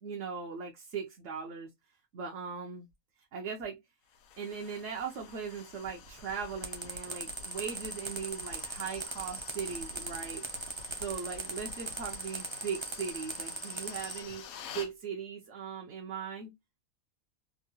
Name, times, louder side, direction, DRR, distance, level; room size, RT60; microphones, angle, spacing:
voice 1, 0.0-1.7 2.1-2.9 3.3-3.8 4.4-10.5 11.0-16.5, right 6 dB, 65° right, 1.0 m, -39 dB
sound 1, 4.1-14.9, left 7 dB, 90° left, 1.1 m, -50 dB
sound 2, 5.8-12.3, left 2 dB, 80° right, 1.5 m, -53 dB
sound 3, 6.6-14.2, right 3 dB, 35° right, 0.4 m, -38 dB
3.6 x 2.3 x 2.6 m
omnidirectional pair, 1.4 m